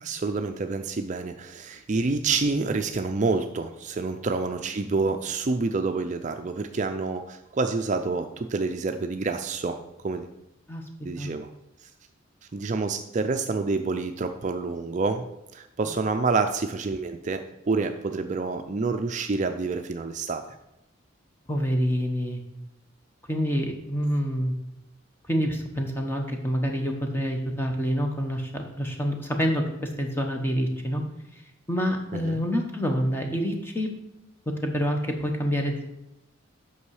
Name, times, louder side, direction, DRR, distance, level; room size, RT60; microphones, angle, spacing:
voice 1, 0.0-9.8 10.0-10.3 11.1-11.5 11.8-11.9 12.5-15.3 15.5-20.4 32.1-32.3, right 3 dB, 35° right, 7 dB, 0.4 m, -28 dB
voice 2, 21.5-22.4 23.3-24.5 25.3-31.0 31.3-31.4 31.7-33.9 34.5-35.8, equal, 10° left, 3 dB, 1.0 m, -27 dB
8.4 x 6.1 x 4.8 m, 0.91 s
head